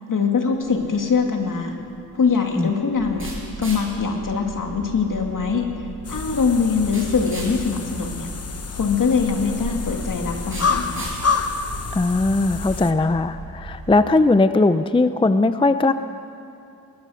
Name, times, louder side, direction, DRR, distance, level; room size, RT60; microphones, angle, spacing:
voice 1, 0.1-1.7 2.1-3.3 3.6-5.7 6.1-8.3 8.7-11.1, left 5 dB, 65° left, 3 dB, 2.3 m, -22 dB
sound 1, 0.5-13.1, right 2 dB, 35° right, 5.9 m, -41 dB
sound 2, 3.0-13.9, right 4 dB, 85° right, 1.5 m, -39 dB
sound 3, 6.0-12.9, left 5 dB, 45° left, 1.0 m, -28 dB
voice 2, 11.9-15.9, left 2 dB, 15° left, 11 dB, 0.5 m, -19 dB
21.5 x 19.0 x 6.4 m, 2.6 s
wide cardioid pair, 135°, 35 cm